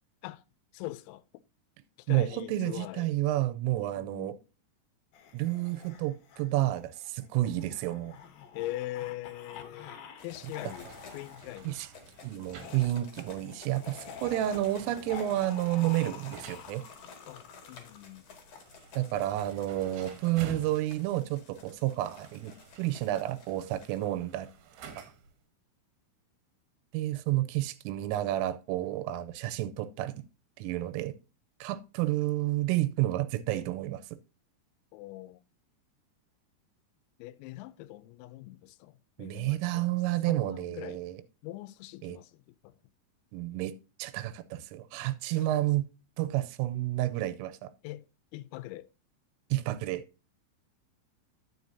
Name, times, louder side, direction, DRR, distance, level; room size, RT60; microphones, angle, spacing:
voice 1, 0.7-1.2 2.0-3.1 4.0-4.3 8.5-9.9 10.2-11.8 17.3-18.2 34.9-35.4 37.2-39.9 40.2-41.0 41.4-42.8 45.4-45.5 47.8-48.0 48.3-48.9, left 16 dB, 90° left, 3.3 m, -42 dB
voice 2, 2.1-4.4 5.3-8.1 11.7-11.9 12.2-16.8 19.0-24.5 25.0-25.1 26.9-30.1 30.6-31.1 31.6-34.0 39.2-41.2 42.0-42.2 43.3-43.7 44.0-45.9 46.2-47.7 49.5-50.0, right 15 dB, 85° right, 3.2 m, -30 dB
sound 1, 5.1-10.2 10.5-11.4 12.5-18.6, left 7 dB, 70° left, 2.3 m, -48 dB
sound 2, 10.2-24.0, left 5 dB, 50° left, 1.9 m, -53 dB
sound 3, 10.3-25.4, right 6 dB, 70° right, 2.5 m, -52 dB
9.5 x 9.3 x 2.7 m
omnidirectional pair, 5.9 m